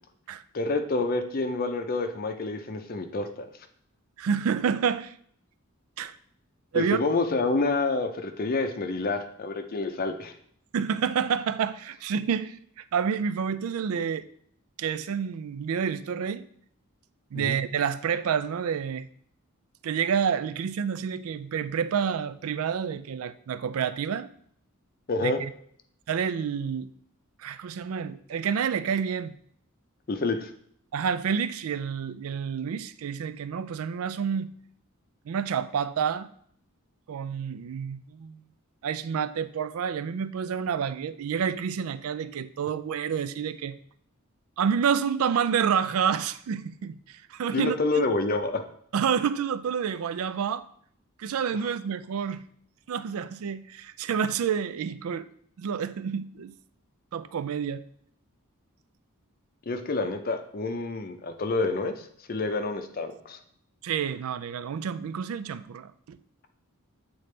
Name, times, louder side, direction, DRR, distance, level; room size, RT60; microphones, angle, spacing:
voice 1, 0.5-3.5 6.7-10.3 17.3-17.6 25.1-25.4 30.1-30.5 47.5-48.6 59.7-63.4, left 3 dB, 40° left, 7 dB, 0.5 m, -28 dB
voice 2, 4.2-5.1 6.0-6.2 6.7-7.0 10.7-14.2 14.8-16.5 17.3-19.1 19.8-24.3 25.2-25.5 26.1-26.9 27.4-29.3 30.9-34.5 35.3-36.3 37.1-38.4 38.8-43.8 44.6-48.1 48.9-50.7 51.2-52.5 52.9-55.3 55.6-56.5 57.1-57.8 63.8-66.2, right 7 dB, 75° right, 14 dB, 0.4 m, -29 dB
8.3 x 3.9 x 3.2 m, 0.64 s
head